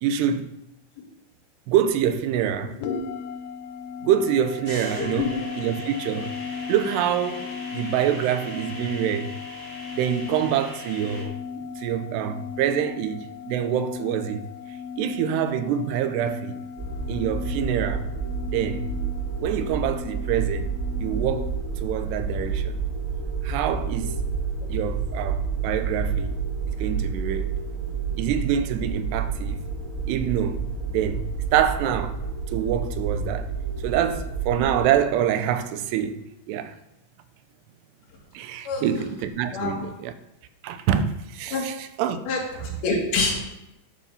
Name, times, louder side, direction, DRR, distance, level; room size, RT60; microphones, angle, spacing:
voice 1, 0.0-0.6 1.7-2.8 4.0-6.4 6.7-9.3 10.0-11.4 11.8-14.5 15.0-16.6 17.1-18.1 18.5-18.9 19.4-20.7 21.0-22.8 23.4-24.2 24.7-26.4 26.7-27.5 28.2-29.6 30.1-32.2 32.5-33.5 33.8-36.7 38.3-40.1 40.6-42.2, right 9 dB, 85° right, 2.9 m, -26 dB
sound 1, 2.8-21.5, left 6 dB, 90° left, 2.9 m, -37 dB
sound 2, 4.6-11.2, equal, 10° right, 3.2 m, -40 dB
voice 2, 5.0-5.4 38.7-38.8 39.5-39.8 41.5-41.7 42.3-43.4, left 4 dB, 70° left, 3.9 m, -26 dB
sound 3, 16.8-34.9, right 5 dB, 70° right, 0.7 m, -29 dB
11.5 x 7.4 x 5.7 m
omnidirectional pair, 4.7 m